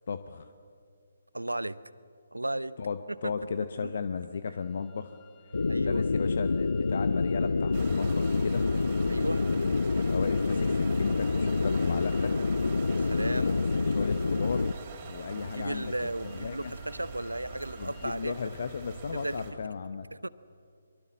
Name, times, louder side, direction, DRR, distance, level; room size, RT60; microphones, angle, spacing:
voice 1, 0.1-0.5 2.8-5.2 5.8-8.7 9.6-12.3 13.3-14.8 15.1-15.9 16.2-16.7 17.8-20.1, left 5 dB, 55° left, 10 dB, 0.9 m, -35 dB
voice 2, 1.3-1.8 2.3-2.8 3.2-3.5 3.8-3.9 5.7-6.1 9.1-9.5 12.8-13.6 15.3-18.5 19.1-19.4 20.1-20.3, right 1 dB, 85° right, 18 dB, 0.8 m, -35 dB
sound 1, 4.5-18.1, left 10 dB, 15° left, 1.8 m, -59 dB
sound 2, 5.5-14.7, left 4 dB, 70° left, 0.5 m, -27 dB
sound 3, 7.7-19.5, right 3 dB, 35° right, 3.8 m, -43 dB
24.0 x 22.5 x 7.4 m, 2.3 s
figure-of-eight pair, 140°, 0 cm